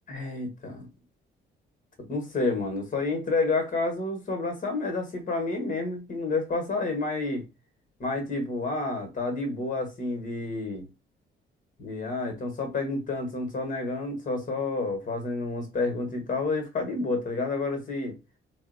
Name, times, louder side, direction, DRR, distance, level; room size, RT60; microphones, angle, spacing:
voice 1, 0.1-0.9 2.1-7.4 8.0-10.8 11.8-18.2, left 3 dB, 40° left, 1.3 m, -29 dB
3.9 x 2.1 x 2.6 m
cardioid pair, 90°, 20 cm